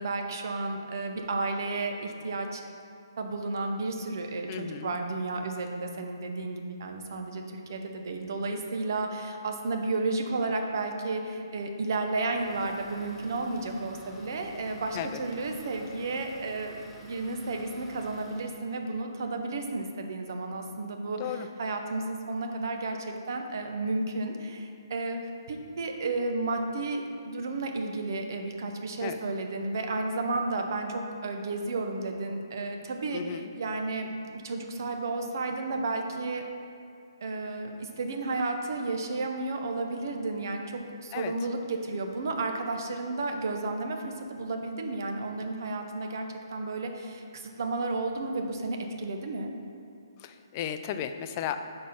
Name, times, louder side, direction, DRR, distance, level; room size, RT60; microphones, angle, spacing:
voice 1, 0.0-2.6 3.2-16.7 17.0-25.2 25.5-36.4 37.2-49.5, right 3 dB, 55° right, 4 dB, 0.8 m, -32 dB
voice 2, 4.5-5.0 14.9-15.2 21.2-21.5 29.0-29.2 33.1-33.5 41.1-41.3 50.2-51.6, left 9 dB, 30° left, 8 dB, 0.4 m, -34 dB
Idling, 12.1-18.6, left 1 dB, ahead, 0.9 m, -51 dB
6.2 x 4.4 x 5.4 m, 2.5 s
figure-of-eight pair, 135°, 2 cm